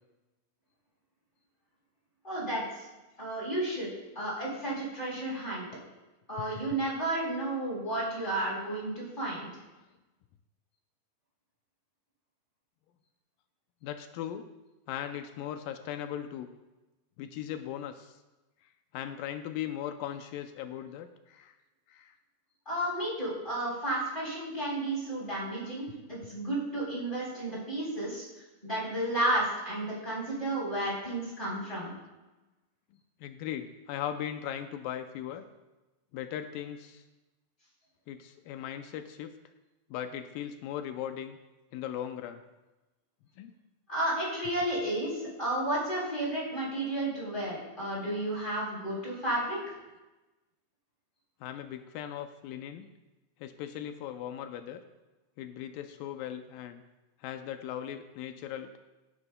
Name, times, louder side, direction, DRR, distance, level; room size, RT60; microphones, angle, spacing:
voice 1, 2.2-2.9 3.2-5.7 6.3-9.5 22.7-28.2 28.6-31.9 43.9-49.6, right 1 dB, 15° left, -6 dB, 3.8 m, -32 dB
voice 2, 13.8-14.5 14.9-16.5 17.2-18.2 18.9-21.6 21.9-22.2 33.2-35.4 36.1-37.0 38.1-39.3 39.9-41.4 41.7-42.4 43.4-43.6 51.4-52.9 53.4-54.8 55.4-56.8 57.2-58.8, left 10 dB, 85° left, 8 dB, 2.2 m, -38 dB
16.5 x 9.6 x 2.2 m, 1.1 s
omnidirectional pair, 4.0 m